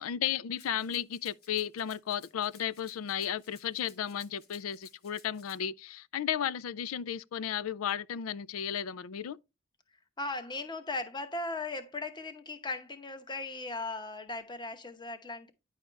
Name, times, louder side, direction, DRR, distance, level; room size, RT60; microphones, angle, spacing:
voice 1, 0.0-9.4, left 9 dB, 80° left, 0.4 m, -34 dB
Rattle (instrument), 0.6-5.6, left 5 dB, 50° left, 1.9 m, -58 dB
voice 2, 10.2-15.5, left 2 dB, 20° left, 0.9 m, -38 dB
10.0 x 4.9 x 3.2 m
head